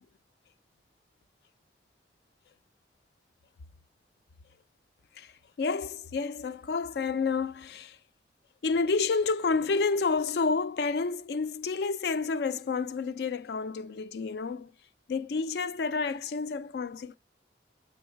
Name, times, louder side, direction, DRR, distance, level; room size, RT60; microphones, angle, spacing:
voice 1, 5.2-8.0 8.6-14.7 15.1-17.2, left 4 dB, 60° left, 0.4 m, -30 dB
6.2 x 3.9 x 4.5 m
head